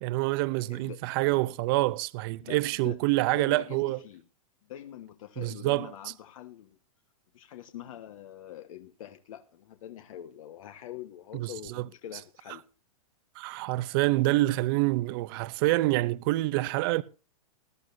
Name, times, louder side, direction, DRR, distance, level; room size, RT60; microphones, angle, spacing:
voice 1, 0.0-4.0 5.4-5.9 11.3-11.9 13.4-17.0, right 19 dB, 40° right, 0.5 m, -27 dB
voice 2, 2.4-3.0 3.3-4.2 4.7-6.8 7.3-12.6, left 11 dB, 65° left, 1.3 m, -44 dB
20.0 x 12.0 x 2.6 m
hypercardioid pair, 155°, 19 cm